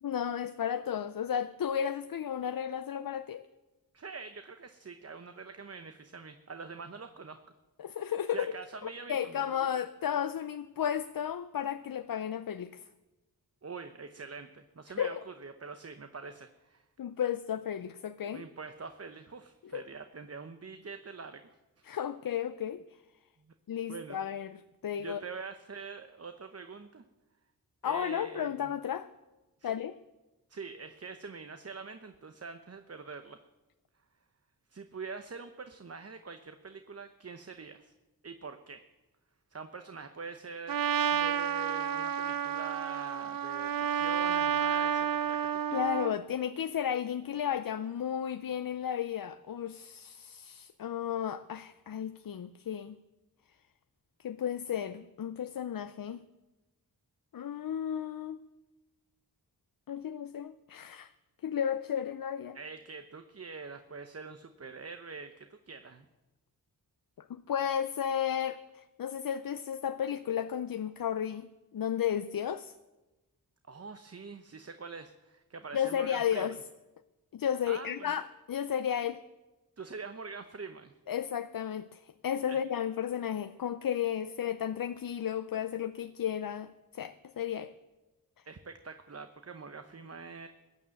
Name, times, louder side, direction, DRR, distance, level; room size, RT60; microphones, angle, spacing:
voice 1, 0.0-3.5 7.8-8.5 8.8-12.8 15.0-15.1 17.0-18.4 19.7-19.8 21.8-22.8 23.7-25.2 27.8-29.1 29.6-30.0 45.7-53.0 54.2-56.2 57.3-58.4 59.9-61.1 61.4-62.6 67.3-71.5 71.7-72.7 75.7-76.6 77.3-79.2 81.1-87.7, left 9 dB, 60° left, 11 dB, 0.6 m, -33 dB
voice 2, 3.9-7.4 8.3-9.7 13.6-16.8 18.3-21.6 23.4-23.5 23.9-24.2 25.0-27.0 27.8-28.7 29.6-29.7 30.5-33.4 34.7-37.9 38.2-38.8 39.5-45.8 62.5-66.1 73.6-76.5 77.7-78.1 79.8-80.9 82.5-82.6 88.4-90.5, right 4 dB, 40° right, 8 dB, 0.9 m, -45 dB
Trumpet, 40.7-46.1, right 8 dB, 60° right, 0.6 m, -30 dB
15.5 x 9.6 x 7.6 m, 1.1 s
cardioid pair, 45°, 39 cm